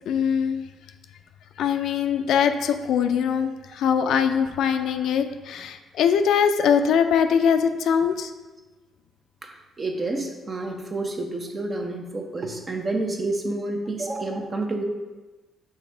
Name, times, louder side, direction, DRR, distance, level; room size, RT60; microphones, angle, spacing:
voice 1, 0.1-0.7 1.6-8.3, left 7 dB, 80° left, 8 dB, 0.4 m, -22 dB
voice 2, 9.4-14.8, right 2 dB, 30° right, 2 dB, 0.9 m, -29 dB
5.9 x 3.4 x 4.9 m, 1.2 s
cardioid pair, 90°, 0 cm